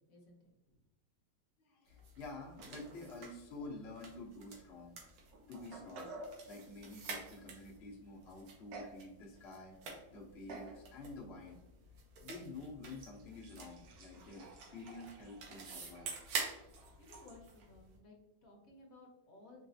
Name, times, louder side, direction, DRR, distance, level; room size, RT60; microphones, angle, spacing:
voice 1, 0.1-0.8 17.0-19.7, left 2 dB, 50° left, 0 dB, 1.1 m, -59 dB
voice 2, 1.6-5.0 5.5-6.2 6.4-9.8 10.1-11.6 12.2-16.9, left 2 dB, 80° left, -2 dB, 0.5 m, -50 dB
sound 1, 1.9-18.0, right 5 dB, 90° right, 1.8 m, -49 dB
sound 2, 2.6-3.3 3.6-3.7 4.6-4.7 5.3-6.4 8.7-9.0 9.5-9.9 10.5-10.8 11.4-11.5 13.0-17.4, right 2 dB, 65° right, 1.2 m, -53 dB
4.9 x 3.1 x 2.6 m, 0.89 s
omnidirectional pair, 2.3 m